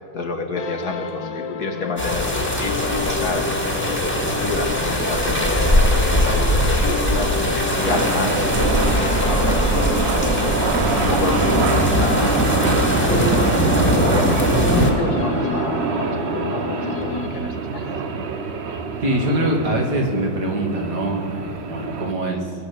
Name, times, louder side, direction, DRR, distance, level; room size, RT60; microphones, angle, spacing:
voice 1, 0.1-3.4 3.8-7.3 7.8-8.5 8.9-12.4 13.0-16.2 16.5-17.9, left 3 dB, 60° left, 4 dB, 1.9 m, -30 dB
sound 1, 0.6-17.8, left 5 dB, 75° left, 1.7 m, -30 dB
sound 2, 2.0-14.9, equal, 5° left, 1.9 m, -20 dB
sound 3, 7.9-22.1, right 5 dB, 45° right, 0.9 m, -25 dB
voice 2, 19.0-22.5, right 1 dB, 65° right, 1 dB, 2.7 m, -23 dB
21.5 x 8.2 x 6.8 m, 2.4 s
omnidirectional pair, 1.9 m